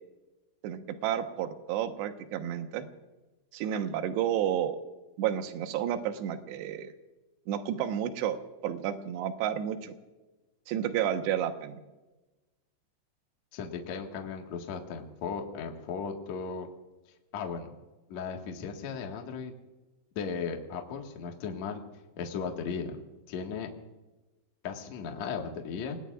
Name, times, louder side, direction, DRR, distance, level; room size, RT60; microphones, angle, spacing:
voice 1, 0.6-2.9 3.5-4.8 5.2-6.9 7.5-8.4 8.6-9.9 10.7-11.8, right 10 dB, 70° right, 6 dB, 3.1 m, -31 dB
voice 2, 13.5-16.7 17.3-17.8 18.1-19.5 20.2-21.8 22.2-23.0 23.3-23.7 24.6-26.0, left 6 dB, 55° left, 2 dB, 2.1 m, -36 dB
28.5 x 20.0 x 2.5 m, 1.1 s
omnidirectional pair, 5.5 m